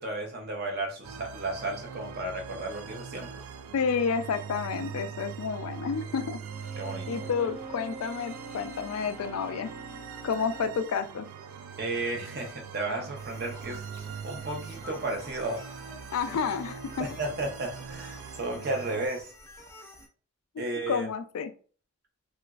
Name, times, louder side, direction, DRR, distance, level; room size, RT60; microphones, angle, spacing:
voice 1, 0.0-3.4 6.7-7.3 11.8-13.8 14.2-15.6 17.0-19.3 20.6-21.1, right 2 dB, 45° right, 1 dB, 0.7 m, -33 dB
sound 1, 1.0-19.1, right 6 dB, 80° right, 0.3 m, -42 dB
voice 2, 3.7-6.4 7.1-9.7 10.2-11.3 16.1-17.1 20.9-21.5, left 6 dB, 80° left, 10 dB, 0.3 m, -30 dB
Bowed string instrument, 6.5-10.8, right 2 dB, 5° right, 0.8 m, -45 dB
sound 2, 13.1-20.1, left 1 dB, 15° left, 0.4 m, -50 dB
3.0 x 2.4 x 2.3 m, 0.40 s
head